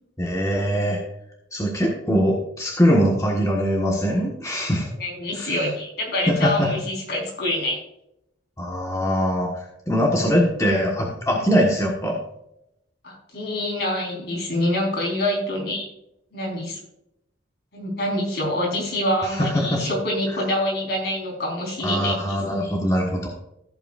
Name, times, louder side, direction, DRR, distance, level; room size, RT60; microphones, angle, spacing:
voice 1, 0.2-1.0 1.5-4.9 5.4-5.6 6.3-6.7 8.6-12.2 19.4-19.8 21.8-23.3, equal, 15° left, -1 dB, 1.4 m, -22 dB
voice 2, 4.7-7.8 13.0-15.9 16.3-16.8 17.7-22.2, left 1 dB, 60° left, -1 dB, 4.2 m, -26 dB
15.0 x 8.1 x 2.5 m, 0.79 s
head